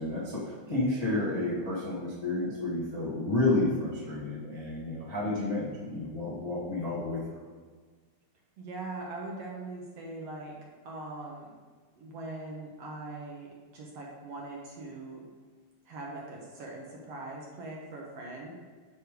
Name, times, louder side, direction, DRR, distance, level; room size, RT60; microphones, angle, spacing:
voice 1, 0.0-7.4, left 2 dB, 55° left, -8 dB, 0.4 m, -31 dB
voice 2, 8.6-10.6 10.9-11.5 12.0-13.5 13.7-15.2 15.9-18.5, right 2 dB, 65° right, -2 dB, 1.7 m, -41 dB
9.5 x 3.3 x 5.1 m, 1.5 s
omnidirectional pair, 3.7 m